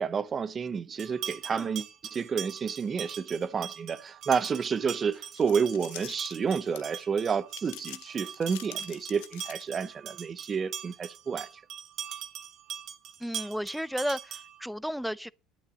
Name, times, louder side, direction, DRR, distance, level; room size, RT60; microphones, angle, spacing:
voice 1, 0.0-11.5, right 6 dB, 35° right, 0.8 m, -30 dB
Cow Bell, 1.0-14.7, right 9 dB, 55° right, 1.2 m, -42 dB
sound 1, 5.1-7.0 7.5-9.9, left 18 dB, 85° left, 0.7 m, -46 dB
voice 2, 13.2-15.3, equal, ahead, 0.5 m, -33 dB
11.5 x 8.3 x 5.1 m
supercardioid pair, 90°, 0 cm